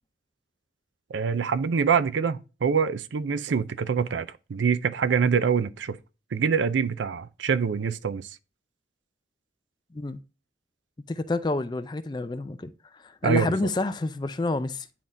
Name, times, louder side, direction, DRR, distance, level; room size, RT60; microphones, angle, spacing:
voice 1, 1.1-6.0 6.3-8.3 13.2-13.6, right 6 dB, 90° right, 0.4 m, -25 dB
voice 2, 11.1-14.9, left 2 dB, 25° left, 0.4 m, -29 dB
10.0 x 3.6 x 2.6 m
head